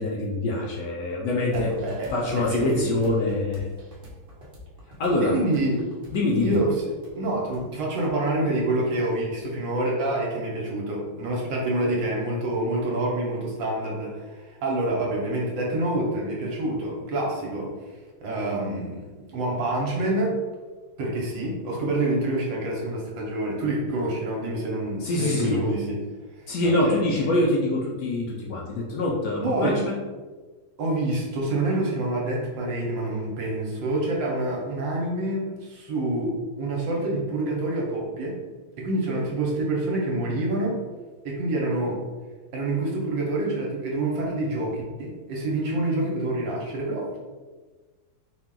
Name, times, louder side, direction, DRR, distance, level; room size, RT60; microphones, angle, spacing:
voice 1, 0.0-1.7 2.1-3.7 5.0-5.3 6.1-6.6 25.0-25.7 26.5-30.0, left 2 dB, 70° left, -3 dB, 1.1 m, -25 dB
sound 1, 1.5-9.1, left 1 dB, 45° right, 0.7 m, -45 dB
voice 2, 1.5-2.1 2.5-2.9 5.2-5.8 6.4-17.7 18.2-20.4 21.0-26.0 26.6-27.0 29.4-29.8 30.8-38.4 38.8-40.8 41.2-42.0 42.5-47.2, right 2 dB, 65° right, -2 dB, 1.5 m, -27 dB
4.3 x 2.3 x 3.7 m, 1.3 s
omnidirectional pair, 2.3 m